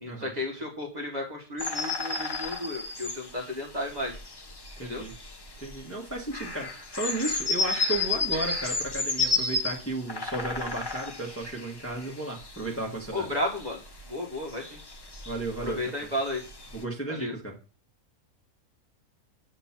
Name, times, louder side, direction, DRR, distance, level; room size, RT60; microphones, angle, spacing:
voice 1, 0.0-4.2 4.8-5.0 13.1-13.8 14.1-14.8 15.6-16.4 17.1-17.3, left 1 dB, 30° right, -2 dB, 1.1 m, -33 dB
sound 1, 1.6-16.8, left 3 dB, 35° left, 0.4 m, -33 dB
voice 2, 4.8-5.1 5.6-13.3 15.2-15.8 16.7-17.6, right 2 dB, 10° left, -2 dB, 1.2 m, -34 dB
7.6 x 3.0 x 5.7 m, 0.36 s
omnidirectional pair, 1.5 m